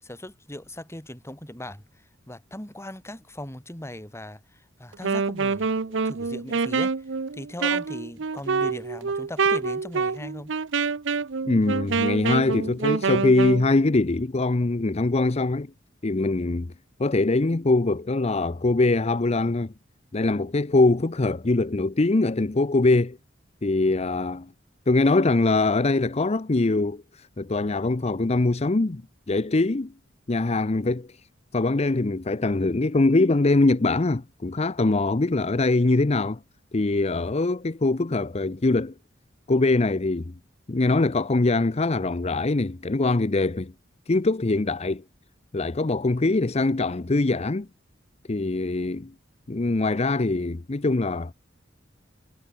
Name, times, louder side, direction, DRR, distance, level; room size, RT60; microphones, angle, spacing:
voice 1, 0.0-10.5, left 1 dB, 15° left, 3.9 m, -39 dB
Wind instrument woodwind instrument, 4.9-13.7, right 5 dB, 70° right, 0.7 m, -26 dB
voice 2, 11.5-15.7 16.0-16.7 17.0-19.7 20.1-23.2 23.6-24.5 24.9-29.0 29.3-29.9 30.3-31.2 31.5-36.4 36.7-38.9 39.5-40.3 40.7-43.7 44.1-45.0 45.5-47.7 48.3-49.1 49.5-51.3, left 2 dB, 35° left, 0.7 m, -23 dB
head